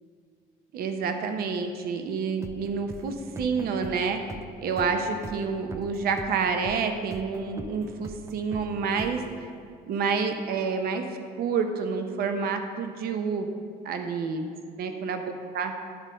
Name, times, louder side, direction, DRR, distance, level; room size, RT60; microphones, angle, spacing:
voice 1, 0.7-4.2 4.6-9.2 9.9-13.5 13.8-14.5 14.8-15.2 15.5-15.7, right 5 dB, 65° right, 6 dB, 0.7 m, -28 dB
sound 1, 2.4-10.0, right 3 dB, 15° right, 0.4 m, -42 dB
10.5 x 3.7 x 6.5 m, 2.2 s
cardioid pair, 110°, 17 cm